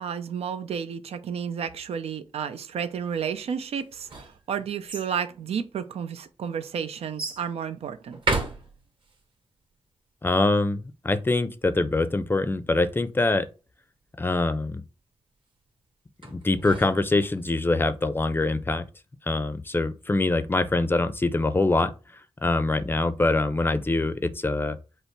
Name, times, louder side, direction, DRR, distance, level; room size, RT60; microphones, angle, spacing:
voice 1, 0.0-8.2, right 7 dB, 85° right, 0.5 m, -32 dB
sound 1, 3.8-5.1 5.9-6.0 7.2-7.5 8.1-9.2 16.2-17.5, right 3 dB, 55° right, 1.5 m, -33 dB
voice 2, 10.2-13.5 14.2-14.8 16.3-18.9 19.3-21.9 22.4-24.8, left 2 dB, 20° left, 0.5 m, -24 dB
5.4 x 2.0 x 4.6 m
cardioid pair, 80°, 10 cm